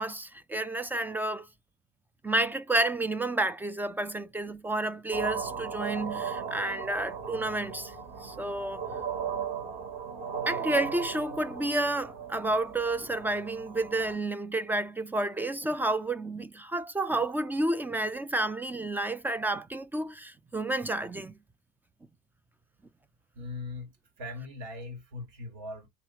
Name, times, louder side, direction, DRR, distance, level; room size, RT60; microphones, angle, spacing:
voice 1, 0.0-1.5 2.2-7.9 8.2-8.8 10.5-21.3, right 2 dB, 10° right, 0.3 m, -30 dB
sound 1, 5.1-14.2, right 6 dB, 50° right, 1.5 m, -37 dB
voice 2, 23.3-25.9, left 2 dB, 85° right, 2.1 m, -40 dB
3.2 x 2.8 x 4.4 m
supercardioid pair, 115°, 21 cm